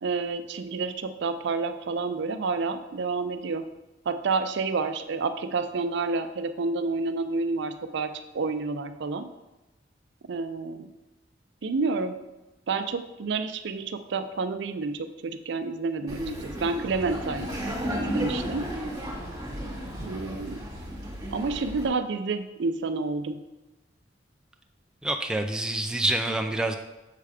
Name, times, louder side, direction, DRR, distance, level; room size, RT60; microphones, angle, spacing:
voice 1, 0.0-3.7 4.1-9.3 10.3-10.9 11.6-12.2 12.7-17.5 18.0-18.7 20.0-20.6 21.3-23.4, right 4 dB, 65° right, 9 dB, 0.4 m, -29 dB
Laughter, 16.1-21.9, equal, 20° right, 1.8 m, -33 dB
voice 2, 25.0-26.8, right 1 dB, 5° right, 4 dB, 0.3 m, -27 dB
6.6 x 3.5 x 4.9 m, 1.0 s
head